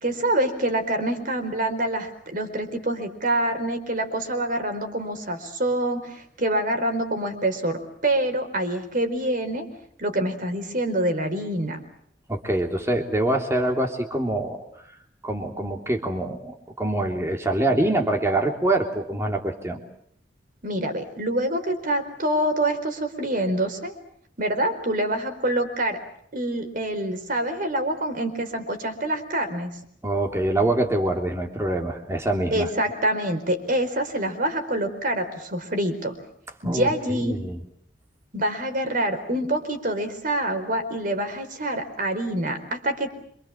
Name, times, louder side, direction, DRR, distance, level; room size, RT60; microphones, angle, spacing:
voice 1, 0.0-9.7 10.0-11.8 20.6-23.9 24.4-26.0 26.3-29.7 32.5-36.1 36.6-37.5 38.3-43.1, right 1 dB, 50° right, 7 dB, 4.7 m, -26 dB
voice 2, 12.3-14.6 15.2-19.8 30.0-32.7 36.6-37.6, right 1 dB, 15° right, 2 dB, 3.3 m, -25 dB
27.0 x 26.5 x 7.4 m, 0.67 s
head